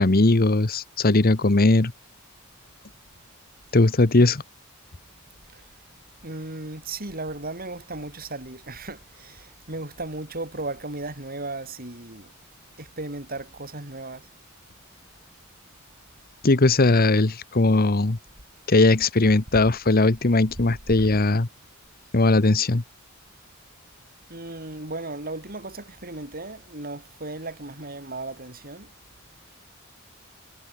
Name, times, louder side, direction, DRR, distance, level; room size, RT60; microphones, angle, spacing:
voice 1, 0.0-1.9 3.7-4.4 16.4-18.2 18.7-21.5 22.1-22.8, left 2 dB, 45° left, 1.1 m, -19 dB
voice 2, 6.2-12.3 12.8-14.3 20.9-21.1 24.3-28.9, right 2 dB, 45° right, 6.2 m, -36 dB
head